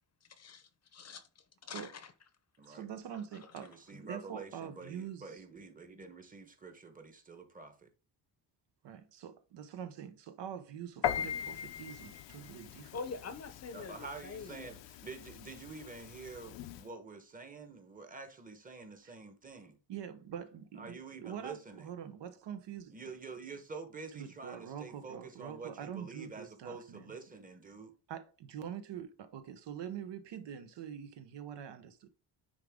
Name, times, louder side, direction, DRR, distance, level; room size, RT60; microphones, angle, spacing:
voice 1, 0.9-2.1 3.3-3.5 12.9-14.7, left 5 dB, 35° left, 0.7 m, -45 dB
voice 2, 2.7-5.4 8.8-13.0 19.0-19.1 19.9-20.9 21.2-23.0 24.2-27.2 28.1-32.1, right 8 dB, 75° right, 1.1 m, -45 dB
voice 3, 3.6-7.9 13.7-19.8 20.7-21.9 22.9-27.9, right 4 dB, 20° right, 1.1 m, -48 dB
Piano, 11.0-16.9, left 9 dB, 90° left, 0.8 m, -41 dB
9.8 x 3.7 x 3.6 m
cardioid pair, 170°, 43 cm